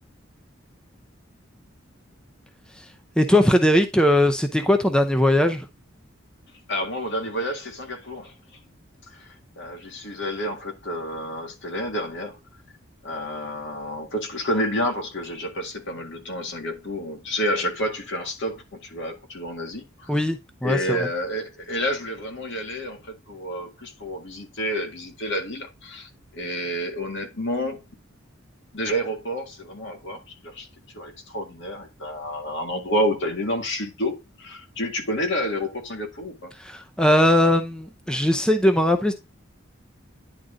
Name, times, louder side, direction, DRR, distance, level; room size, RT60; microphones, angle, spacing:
voice 1, 3.2-5.6 20.1-21.0 36.6-39.1, left 1 dB, 5° left, 0.6 m, -20 dB
voice 2, 6.7-8.3 9.1-12.4 13.0-20.2 20.6-27.9 28.7-30.7 30.9-36.5, equal, 65° left, 1.9 m, -29 dB
10.0 x 3.8 x 3.9 m
head